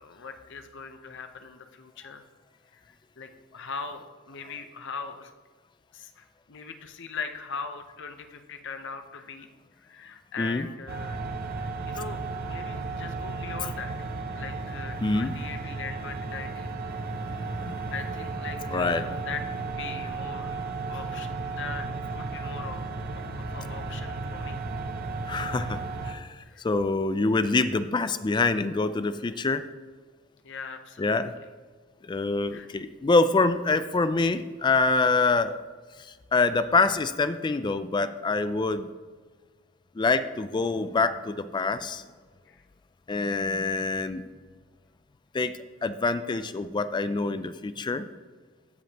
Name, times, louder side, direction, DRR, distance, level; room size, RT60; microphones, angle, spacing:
voice 1, 0.0-2.2 2.7-5.3 5.9-11.2 11.6-16.8 17.9-20.5 20.9-22.8 23.1-24.6 26.4-26.6 30.4-31.5 32.5-32.7 42.5-42.6, left 5 dB, 60° left, 7 dB, 0.8 m, -40 dB
sound 1, 10.9-26.1, right 3 dB, 45° right, 0.6 m, -34 dB
voice 2, 15.0-15.3 17.3-17.7 18.7-19.0 25.3-29.7 31.0-31.3 32.1-35.6 36.3-38.9 40.0-42.0 43.1-44.3 45.3-45.5 45.8-48.1, left 3 dB, 20° left, 12 dB, 0.3 m, -25 dB
15.5 x 5.1 x 2.9 m, 1.5 s
head